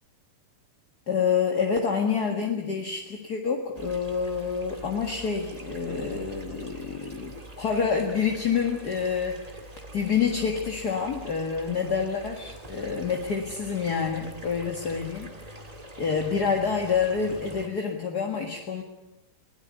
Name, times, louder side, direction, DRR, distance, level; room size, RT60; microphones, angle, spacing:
voice 1, 1.1-15.3 15.5-15.6 16.0-18.8, left 6 dB, 40° left, 2 dB, 1.7 m, -27 dB
sound 1, 3.7-17.7, right 1 dB, 15° right, 1.3 m, -44 dB
21.5 x 17.0 x 9.5 m, 0.91 s
omnidirectional pair, 3.9 m